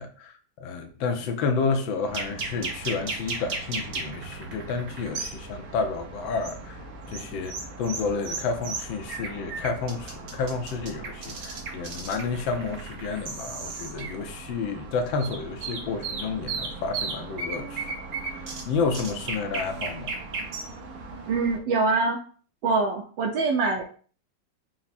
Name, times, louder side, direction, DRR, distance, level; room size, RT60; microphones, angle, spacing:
voice 1, 0.0-6.8 7.1-17.9 18.2-20.1, left 4 dB, 85° left, 1.4 m, -30 dB
sound 1, 2.0-21.6, right 3 dB, 55° right, 1.1 m, -36 dB
voice 2, 21.3-22.2 22.6-23.8, right 3 dB, 80° right, 1.3 m, -24 dB
4.6 x 2.0 x 4.0 m
omnidirectional pair, 2.1 m